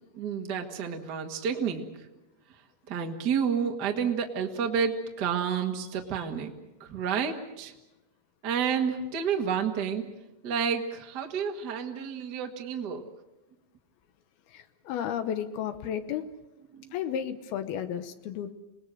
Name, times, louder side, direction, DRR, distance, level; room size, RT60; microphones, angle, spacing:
voice 1, 0.1-1.8 2.9-6.5 6.8-7.7 8.4-10.1 10.4-13.0 16.7-16.9, right 7 dB, 80° right, 3 dB, 0.9 m, -30 dB
voice 2, 14.5-16.2 16.9-18.5, left 9 dB, 70° left, 10 dB, 2.5 m, -33 dB
27.5 x 19.5 x 7.8 m, 1.0 s
omnidirectional pair, 5.4 m